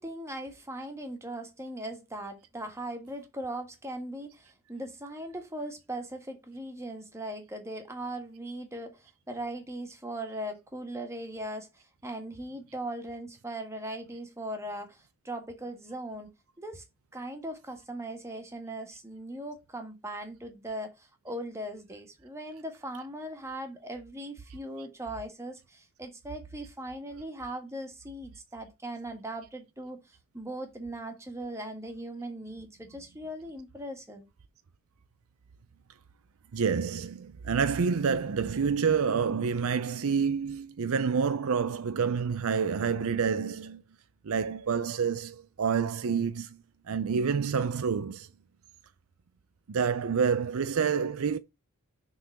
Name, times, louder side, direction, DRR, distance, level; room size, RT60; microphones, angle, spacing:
voice 1, 0.0-16.3 16.6-16.8 17.1-34.3, right 1 dB, 15° right, 1.5 m, -39 dB
voice 2, 36.5-43.8 44.2-46.6 46.9-48.3 49.7-51.4, right 6 dB, 65° right, 0.5 m, -28 dB
6.6 x 3.9 x 6.0 m
head